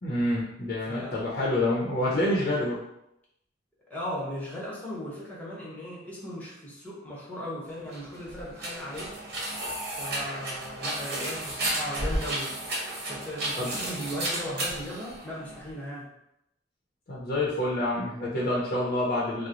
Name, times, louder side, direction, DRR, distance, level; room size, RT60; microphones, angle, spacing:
voice 1, 0.0-2.8 13.6-13.7 17.1-19.5, left 1 dB, 50° left, -5 dB, 0.7 m, -27 dB
voice 2, 0.9-1.3 3.9-9.2 10.0-12.6 13.1-16.1, equal, 10° left, -6 dB, 1.0 m, -37 dB
sound 1, 7.8-15.7, right 1 dB, 60° right, 1.1 m, -33 dB
3.0 x 2.1 x 3.8 m, 0.82 s
head